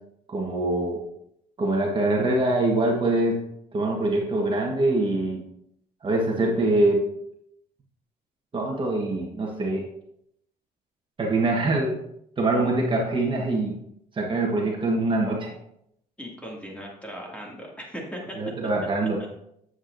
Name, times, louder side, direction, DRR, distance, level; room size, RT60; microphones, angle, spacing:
voice 1, 0.3-1.0 1.6-3.4 3.7-5.4 6.0-7.0 8.5-9.8 11.2-11.9 12.4-13.7 14.1-15.5 18.4-19.2, right 2 dB, 30° right, -1 dB, 1.5 m, -24 dB
voice 2, 16.2-18.4 19.2-19.3, equal, 10° left, -2 dB, 2.4 m, -38 dB
9.7 x 7.8 x 2.7 m, 0.76 s
cardioid pair, 110°, 17 cm